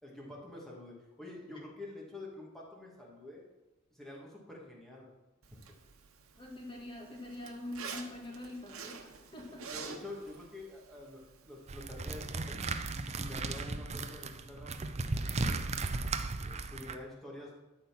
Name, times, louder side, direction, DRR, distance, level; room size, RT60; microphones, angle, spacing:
voice 1, 0.0-3.4 3.9-5.1 9.3-9.4 9.7-12.7 13.2-14.8 15.4-15.7 16.4-17.5, left 2 dB, ahead, -4 dB, 2.1 m, -47 dB
Zipper (clothing), 5.4-12.1, right 5 dB, 75° right, 1.1 m, -49 dB
voice 2, 6.4-9.7, left 1 dB, 25° left, 0 dB, 1.8 m, -44 dB
sound 1, 11.7-17.0, right 3 dB, 30° right, 0.5 m, -36 dB
12.0 x 4.3 x 5.9 m, 1.1 s
head